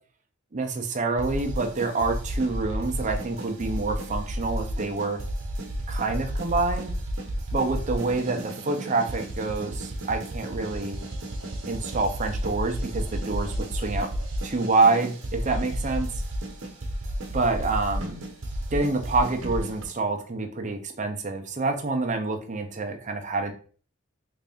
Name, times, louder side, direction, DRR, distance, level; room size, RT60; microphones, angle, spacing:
voice 1, 0.5-5.2 5.9-6.9 7.5-11.0 11.7-14.1 14.4-16.1 17.3-18.2 18.7-23.5, right 3 dB, 35° right, 4 dB, 0.6 m, -27 dB
sound 1, 1.2-19.8, equal, 80° right, 0.9 m, -32 dB
3.4 x 2.6 x 3.5 m, 0.41 s
head